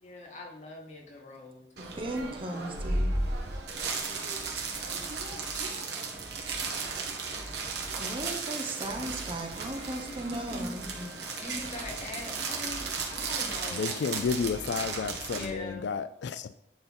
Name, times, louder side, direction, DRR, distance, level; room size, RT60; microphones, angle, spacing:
voice 1, 0.0-1.7 10.0-14.3 15.3-15.9, left 2 dB, 40° left, 2.1 m, -42 dB
voice 2, 1.8-3.1 8.0-10.9, right 1 dB, 30° right, 1.1 m, -36 dB
sound 1, 1.8-15.5, right 3 dB, 70° right, 1.8 m, -35 dB
sound 2, 4.3-15.7, equal, 10° right, 1.4 m, -49 dB
voice 3, 13.7-16.5, left 5 dB, 75° left, 0.3 m, -31 dB
10.5 x 5.5 x 4.4 m
head